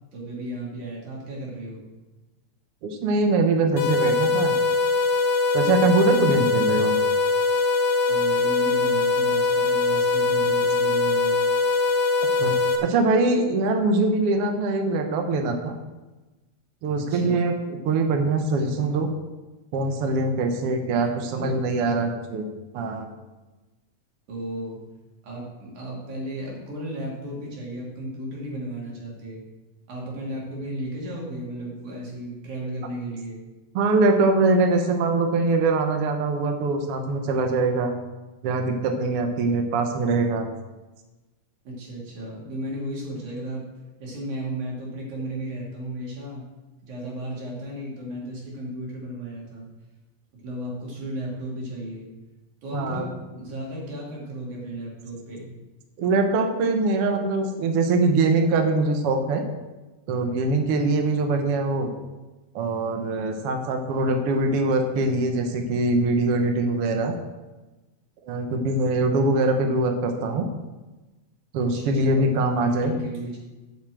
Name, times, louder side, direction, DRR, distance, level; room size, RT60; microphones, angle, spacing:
voice 1, 0.1-1.8 8.1-11.4 17.1-17.5 20.9-21.5 24.3-24.8 25.2-29.4 29.9-33.4 41.6-43.7 44.0-46.4 46.8-49.7 50.4-52.1 52.6-55.5 71.6-73.4, right 1 dB, 85° right, -3 dB, 4.2 m, -34 dB
voice 2, 2.8-4.5 5.5-7.0 12.4-12.5 12.8-15.7 16.8-17.5 17.8-19.1 19.7-22.5 22.7-23.1 33.7-37.9 38.4-40.5 52.7-53.0 56.0-59.4 60.1-61.9 62.6-67.1 68.3-70.5 71.5-72.9, right 3 dB, 60° right, 4 dB, 1.8 m, -23 dB
sound 1, 3.8-12.8, left 3 dB, 65° left, 2.3 m, -22 dB
8.1 x 7.6 x 7.8 m, 1.1 s
omnidirectional pair, 3.3 m